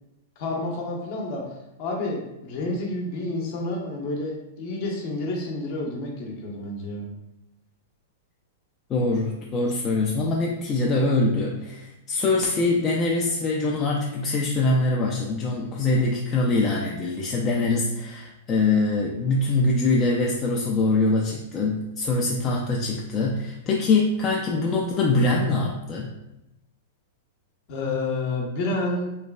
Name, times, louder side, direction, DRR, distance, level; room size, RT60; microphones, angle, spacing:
voice 1, 0.4-1.4 1.8-7.1 27.7-29.1, left 2 dB, 50° left, 0 dB, 0.7 m, -29 dB
voice 2, 8.9-26.1, left 2 dB, 30° left, -2 dB, 0.3 m, -23 dB
3.1 x 2.2 x 2.2 m, 0.91 s
hypercardioid pair, 110°, 0 cm